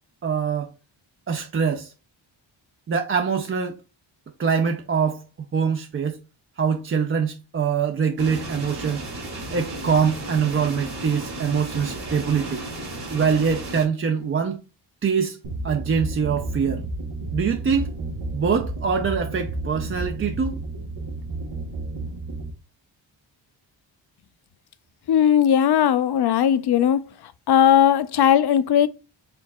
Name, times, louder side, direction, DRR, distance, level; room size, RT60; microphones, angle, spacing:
voice 1, 0.2-0.7 1.3-1.9 2.9-3.8 4.4-5.2 5.5-6.2 6.6-9.0 9.5-12.6 13.1-14.6 15.0-15.4 15.6-16.8 17.3-17.9 18.3-20.6, right 6 dB, 30° right, 0.4 m, -24 dB
sound 1, 8.2-13.9, right 2 dB, 55° right, 1.6 m, -34 dB
sound 2, 15.4-22.5, right 2 dB, 90° right, 1.0 m, -31 dB
voice 2, 25.1-27.0 27.5-28.9, left 9 dB, 60° left, 0.5 m, -18 dB
4.5 x 3.9 x 2.2 m
cardioid pair, 90°, 46 cm